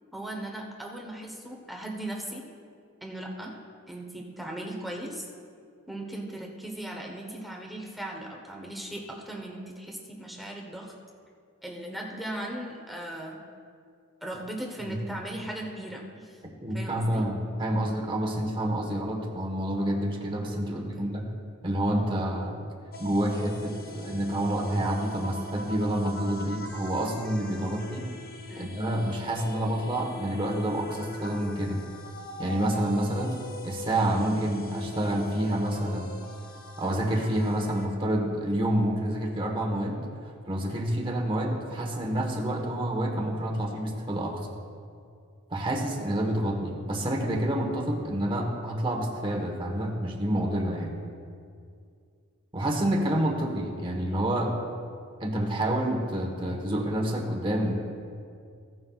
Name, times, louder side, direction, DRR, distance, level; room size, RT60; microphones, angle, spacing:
voice 1, 0.1-2.4 3.0-3.5 3.9-5.3 5.9-10.9 11.6-13.4 14.2-16.4 16.7-17.3 20.7-21.1 28.5-28.8, right 1 dB, ahead, -1 dB, 1.0 m, -38 dB
voice 2, 16.6-21.3 21.6-22.6 23.0-28.1 28.6-31.8 32.4-36.2 36.8-44.4 45.5-51.0 52.5-54.5 55.2-57.7, right 1 dB, 25° right, 0 dB, 1.2 m, -28 dB
sound 1, 22.9-37.9, left 1 dB, 45° left, 0.8 m, -42 dB
16.0 x 9.5 x 2.4 m, 2.3 s
head